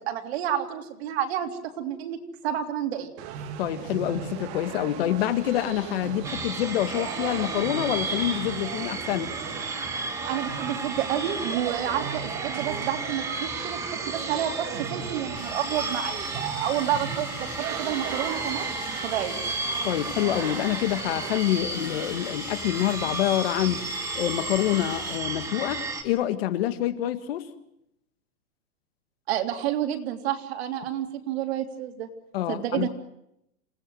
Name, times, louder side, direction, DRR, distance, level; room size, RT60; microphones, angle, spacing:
voice 1, 0.0-3.1 10.3-13.8 14.1-17.5 17.8-18.7 19.0-19.4 29.3-32.1 32.5-32.9, right 10 dB, 45° right, 6 dB, 3.2 m, -29 dB
sound 1, 3.2-21.4, right 9 dB, 25° right, 1.9 m, -37 dB
voice 2, 3.6-9.3 19.8-23.8 24.2-27.5 32.3-32.9, left 13 dB, 40° left, 10 dB, 1.8 m, -27 dB
sound 2, 6.2-26.0, right 3 dB, 5° right, 1.5 m, -33 dB
sound 3, 15.3-25.2, left 9 dB, 85° left, 4.9 m, -44 dB
29.0 x 18.0 x 7.8 m, 0.81 s
hypercardioid pair, 165°, 44 cm